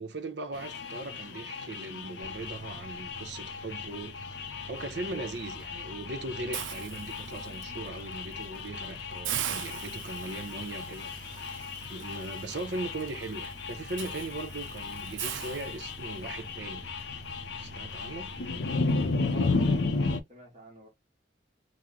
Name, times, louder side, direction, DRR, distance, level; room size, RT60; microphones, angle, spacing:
voice 1, 0.0-4.2 4.7-11.1 11.9-16.9 17.6-18.3, right 2 dB, 65° right, 0.7 m, -39 dB
sound 1, 0.5-20.2, left 3 dB, 65° left, 0.5 m, -35 dB
sound 2, 2.2-19.0, right 1 dB, 25° right, 0.5 m, -49 dB
Hiss, 6.5-7.6 8.1-8.3 8.7-8.8 9.2-16.3, right 12 dB, 80° right, 0.4 m, -40 dB
voice 2, 19.3-20.9, right 3 dB, 40° right, 1.1 m, -52 dB
3.0 x 2.0 x 3.7 m
head